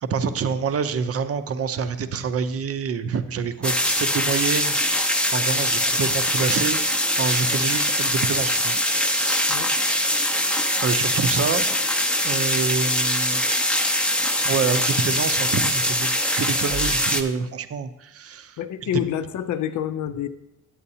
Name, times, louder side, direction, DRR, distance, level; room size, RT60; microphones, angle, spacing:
voice 1, 0.0-4.8 5.3-6.8 7.1-9.5 10.8-11.6 12.2-13.4 14.4-18.6, right 6 dB, 50° right, 10 dB, 0.6 m, -27 dB
sound 1, 3.6-17.2, left 1 dB, 5° left, 0.6 m, -22 dB
voice 2, 18.6-20.3, left 10 dB, 70° left, 11 dB, 0.6 m, -28 dB
9.8 x 7.9 x 2.8 m, 0.91 s
cardioid pair, 100°, 31 cm